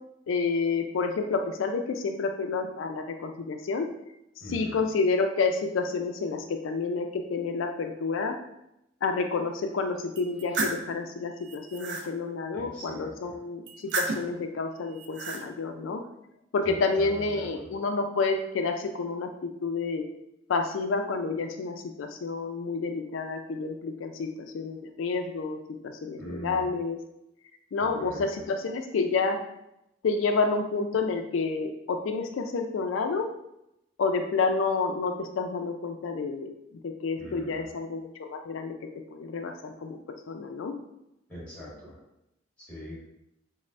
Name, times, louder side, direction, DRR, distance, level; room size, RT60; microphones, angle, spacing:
voice 1, 0.3-3.9 4.5-8.4 9.0-16.0 16.5-20.0 20.5-24.3 24.5-25.6 25.8-27.0 27.7-29.4 30.0-33.3 34.0-36.5 36.8-38.7 39.1-40.0 40.3-40.8, left 4 dB, 85° left, 5 dB, 0.4 m, -29 dB
voice 2, 4.4-4.8 12.5-13.4 16.6-17.6 26.2-26.7 27.8-28.2 37.2-37.7 41.3-42.0 42.6-43.0, left 1 dB, 5° left, -7 dB, 1.4 m, -42 dB
sound 1, 10.2-10.9 11.4-12.1 13.7-14.4 14.9-15.4, right 3 dB, 60° right, 0.4 m, -32 dB
5.2 x 2.1 x 2.5 m, 0.83 s
head